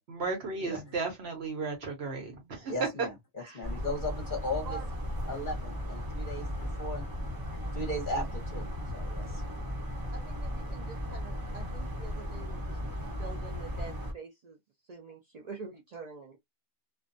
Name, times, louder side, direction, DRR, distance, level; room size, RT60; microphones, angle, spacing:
voice 1, 0.1-2.7 3.0-3.1 3.4-3.6, right 4 dB, 55° right, 1.0 m, -35 dB
voice 2, 2.7-4.8 5.3-7.0 7.6-9.4, left 1 dB, 40° left, 0.9 m, -37 dB
sound 1, 3.6-14.1, equal, 20° right, 0.7 m, -36 dB
voice 3, 10.1-14.6 14.9-16.4, right 4 dB, 80° right, 0.3 m, -46 dB
2.6 x 2.2 x 2.5 m
omnidirectional pair, 1.4 m